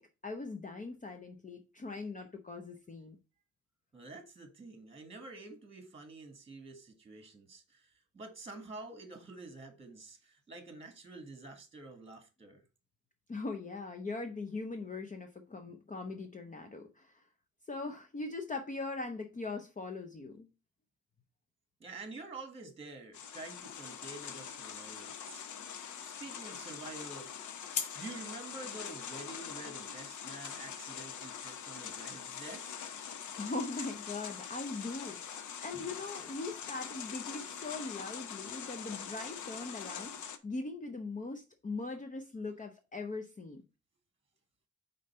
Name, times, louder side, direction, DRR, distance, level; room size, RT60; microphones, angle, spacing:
voice 1, 0.0-3.2 13.3-17.2 17.7-20.5 33.4-40.1 40.4-43.6, left 3 dB, 25° left, 0.7 m, -41 dB
voice 2, 3.9-7.9 8.1-12.6 21.8-25.4 26.0-27.3 27.9-32.8 35.7-35.9, right 3 dB, 20° right, 1.6 m, -48 dB
sound 1, 23.1-40.4, left 8 dB, 85° left, 0.8 m, -43 dB
5.1 x 3.9 x 5.4 m
cardioid pair, 120°, 29 cm